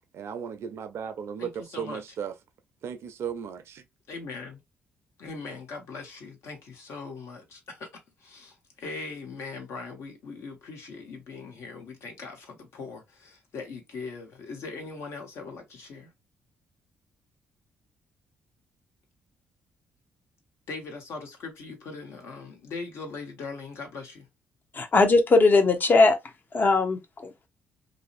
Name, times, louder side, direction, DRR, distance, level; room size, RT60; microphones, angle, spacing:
voice 1, 0.1-2.3 2.8-3.8, right 7 dB, 60° right, 0.4 m, -35 dB
voice 2, 1.4-2.0 4.1-4.6 5.2-7.9 8.2-16.1 20.7-24.3, left 4 dB, 70° left, 0.9 m, -40 dB
voice 3, 24.7-26.2 26.5-27.5, left 3 dB, 40° left, 0.7 m, -20 dB
2.6 x 2.0 x 2.4 m
hypercardioid pair, 50°, 5 cm